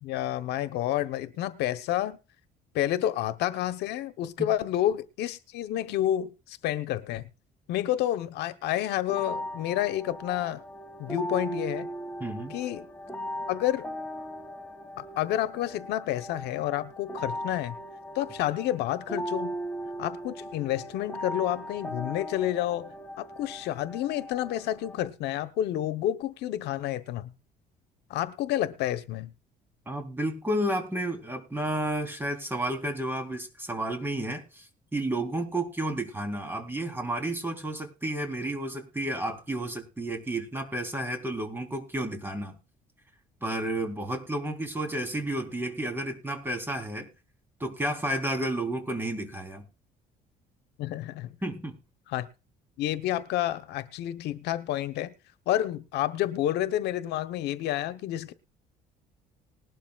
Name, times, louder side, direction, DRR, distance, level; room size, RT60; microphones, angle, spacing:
voice 1, 0.0-2.2 2.7-7.2 7.7-10.6 11.0-11.9 12.5-12.9 13.5-13.9 15.0-17.7 18.1-19.5 20.0-22.9 23.2-27.3 28.1-29.3 50.8-51.3 52.1-52.3 52.8-55.1 55.5-58.3, left 13 dB, 80° left, 1.1 m, -29 dB
sound 1, 9.1-25.1, equal, 10° left, 2.1 m, -38 dB
voice 2, 12.2-12.6 29.9-42.6 43.4-47.1 47.6-49.7 51.4-51.7, right 1 dB, 15° right, 3.9 m, -31 dB
20.0 x 12.0 x 2.4 m
cardioid pair, 110°, 17 cm